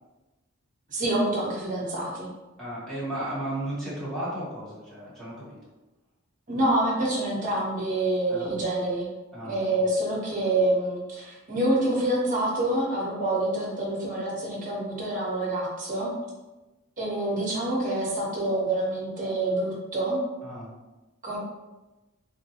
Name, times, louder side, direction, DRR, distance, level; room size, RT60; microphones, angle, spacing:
voice 1, 0.9-2.3 6.5-9.1 9.4-16.1 17.0-20.2 21.2-21.4, right 1 dB, 35° right, -4 dB, 0.8 m, -27 dB
voice 2, 2.6-5.6 8.3-8.6 9.3-9.6 20.4-20.7, right 1 dB, 5° left, -10 dB, 0.9 m, -34 dB
3.5 x 2.1 x 2.8 m, 1.1 s
head